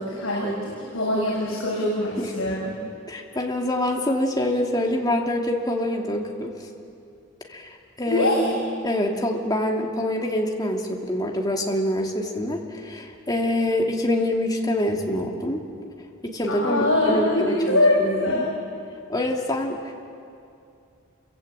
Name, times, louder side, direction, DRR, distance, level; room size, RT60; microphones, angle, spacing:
voice 1, 0.0-2.8 8.0-8.5 16.5-18.5, left 1 dB, 70° left, -6 dB, 7.5 m, -23 dB
voice 2, 3.1-6.5 7.5-8.6 8.8-15.6 16.2-18.5 19.1-19.9, left 1 dB, 20° left, 0 dB, 2.7 m, -25 dB
28.0 x 23.5 x 8.8 m, 2.5 s
head